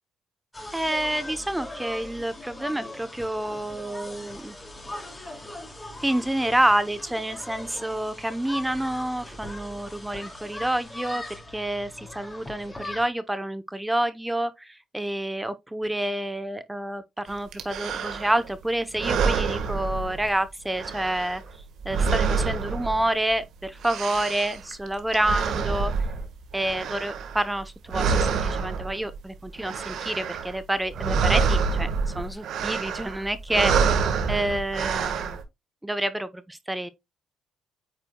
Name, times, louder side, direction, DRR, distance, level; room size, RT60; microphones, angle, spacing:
sound 1, 0.5-13.1, left 1 dB, 15° left, 2.4 m, -40 dB
voice 1, 0.7-4.5 6.0-11.2 11.5-21.4 21.8-25.9 26.5-33.7 34.3-35.4 35.8-36.9, right 1 dB, 10° right, 0.7 m, -28 dB
sound 2, 17.5-18.5 18.9-20.5 20.7-23.4 23.6-27.6 27.9-29.2 29.5-30.6 30.8-35.4, right 5 dB, 75° right, 1.4 m, -27 dB
9.1 x 4.8 x 2.2 m
cardioid pair, 90°, 0 cm